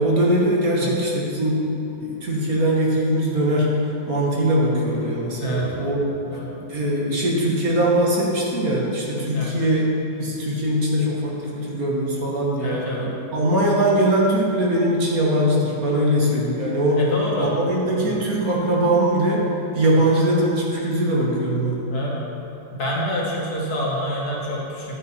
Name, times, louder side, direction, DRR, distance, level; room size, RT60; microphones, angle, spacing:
voice 1, 0.0-1.6 2.0-6.0 6.7-9.9 10.2-17.1 17.4-19.4 19.7-21.9, right 1 dB, 55° right, -4 dB, 2.2 m, -21 dB
voice 2, 5.4-5.7 6.3-6.5 9.3-9.5 12.6-13.0 17.0-17.5 18.0-18.2 21.9-22.2 22.7-25.0, equal, 60° left, -4 dB, 2.4 m, -27 dB
11.0 x 9.7 x 4.6 m, 2.8 s
omnidirectional pair, 1.9 m